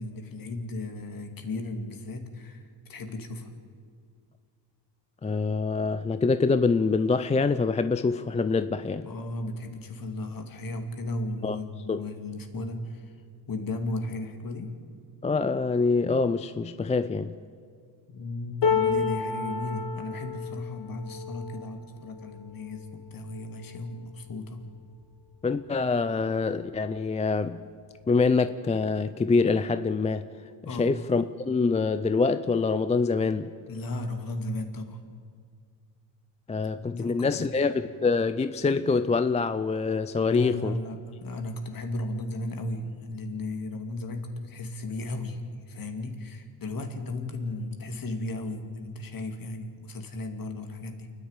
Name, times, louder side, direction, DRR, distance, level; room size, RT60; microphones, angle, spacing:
voice 1, 0.0-3.5 9.0-13.1 13.5-14.7 18.1-24.6 30.6-30.9 33.7-35.0 36.9-37.6 40.3-51.1, left 2 dB, 45° left, 6 dB, 2.4 m, -35 dB
voice 2, 5.2-9.1 11.4-11.6 11.9-12.1 15.2-17.3 25.4-27.6 28.1-30.2 30.6-33.5 36.5-40.7, left 4 dB, 15° left, 11 dB, 0.4 m, -25 dB
sound 1, 18.6-24.8 25.3-25.5 25.8-26.6 27.6-27.7, left 5 dB, 65° left, 3.6 m, -32 dB
28.5 x 10.5 x 9.0 m, 2.1 s
cardioid pair, 120°, 45 cm